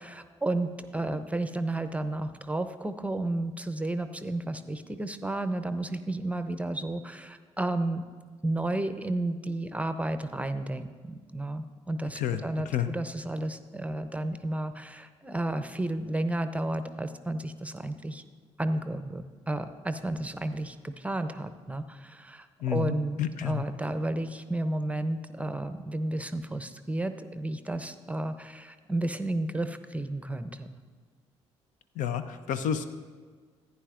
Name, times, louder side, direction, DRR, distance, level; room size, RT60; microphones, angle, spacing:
voice 1, 0.0-8.1 8.4-18.3 18.6-30.7, right 2 dB, 10° right, 10 dB, 0.7 m, -32 dB
voice 2, 22.6-23.6 32.0-32.8, left 9 dB, 60° left, 12 dB, 0.6 m, -30 dB
15.0 x 9.6 x 2.5 m, 1.5 s
figure-of-eight pair, 45°, 15 cm